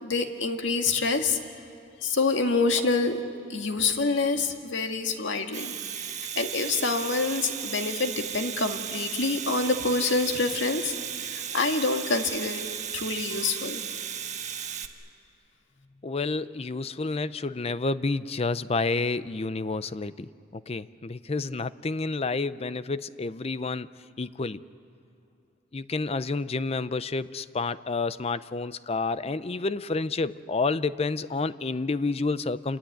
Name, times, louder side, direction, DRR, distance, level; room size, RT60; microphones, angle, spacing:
voice 1, 0.0-1.4 2.0-3.2 3.5-5.7 6.4-10.9 11.2-12.6 12.9-13.8, left 3 dB, 85° left, 5 dB, 1.9 m, -26 dB
Domestic sounds home sounds, 5.4-14.9, right 8 dB, 40° right, 1.4 m, -35 dB
voice 2, 16.0-23.9 24.2-24.6 25.7-32.8, left 3 dB, 35° left, 15 dB, 0.5 m, -29 dB
28.0 x 21.5 x 9.2 m, 2.6 s
head